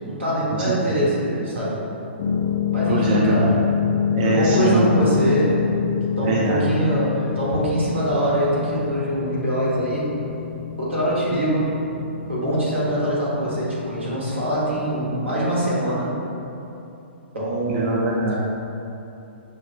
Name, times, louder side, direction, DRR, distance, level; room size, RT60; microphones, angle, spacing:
voice 1, 0.0-1.8 2.7-3.6 4.2-5.5 6.2-10.1 10.8-11.7 12.3-16.1 17.3-18.3, right 1 dB, 85° right, -8 dB, 1.4 m, -23 dB
sound 1, 2.2-15.4, left 8 dB, 40° left, 0.4 m, -27 dB
voice 2, 2.9-3.5 4.1-4.9 6.2-6.7 17.7-18.4, right 4 dB, 45° right, -2 dB, 0.3 m, -23 dB
6.1 x 2.1 x 2.5 m, 2.9 s
figure-of-eight pair, 120°, 6 cm